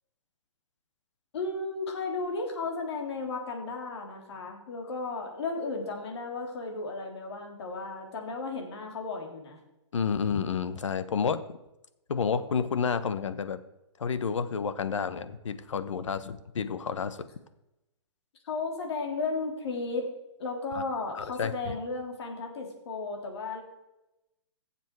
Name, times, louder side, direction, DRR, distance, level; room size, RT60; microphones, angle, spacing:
voice 1, 1.3-9.6 18.4-20.1 20.4-23.6, left 3 dB, 60° left, 1 dB, 3.4 m, -34 dB
voice 2, 9.9-11.6 12.1-13.6 14.0-17.3 20.7-20.8 21.1-21.8, left 6 dB, 90° left, 12 dB, 1.1 m, -30 dB
17.5 x 7.4 x 4.7 m, 0.91 s
hypercardioid pair, 155°, 15 cm